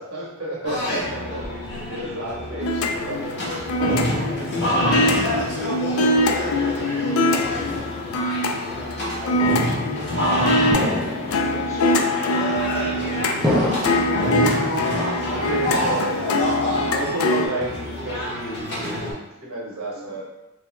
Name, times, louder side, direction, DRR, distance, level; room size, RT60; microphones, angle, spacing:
voice 1, 0.0-3.6 10.8-11.2 13.5-13.7 15.3-16.5 16.9-20.2, right 1 dB, 65° right, -5 dB, 0.9 m, -32 dB
sound 1, 0.6-19.1, left 1 dB, 50° left, 0.9 m, -27 dB
sound 2, 2.6-17.5, left 1 dB, 70° left, 0.3 m, -24 dB
voice 2, 4.1-7.9 8.7-9.7 11.0-12.5 12.9-14.4 19.9-20.2, equal, 15° left, -9 dB, 1.0 m, -41 dB
sound 3, 10.7-11.6 12.4-12.9 13.4-14.2 14.7-15.4 15.7-16.4 16.7-17.2 17.6-18.2, left 1 dB, 5° right, 0.4 m, -28 dB
3.3 x 2.1 x 2.9 m, 0.96 s
head